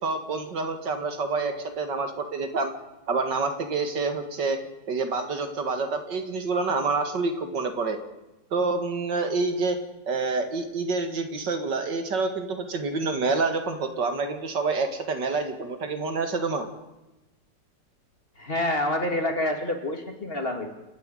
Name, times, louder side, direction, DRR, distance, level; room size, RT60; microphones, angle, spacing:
voice 1, 0.0-2.7 3.1-4.6 4.9-8.0 8.5-9.8 10.1-16.7, right 4 dB, 75° right, 6 dB, 2.6 m, -27 dB
voice 2, 18.4-20.8, left 1 dB, 30° left, 4 dB, 2.5 m, -27 dB
28.5 x 10.0 x 9.1 m, 1.0 s
omnidirectional pair, 1.9 m